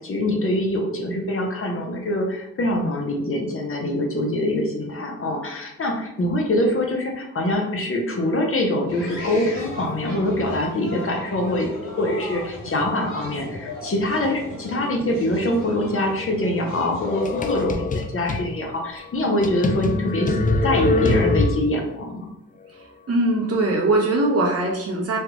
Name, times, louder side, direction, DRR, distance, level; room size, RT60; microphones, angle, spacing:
voice 1, 0.0-11.7 12.0-20.4 20.6-22.1, left 1 dB, 45° left, 0 dB, 0.8 m, -24 dB
sound 1, 8.9-17.4, left 2 dB, 90° left, 1.4 m, -35 dB
sound 2, 17.1-18.5 19.0-19.1 19.4-21.9, left 2 dB, 25° left, 0.4 m, -23 dB
voice 2, 23.1-25.2, right 2 dB, 50° right, -2 dB, 1.0 m, -21 dB
3.3 x 2.3 x 3.0 m, 0.80 s
cardioid pair, 80°, 31 cm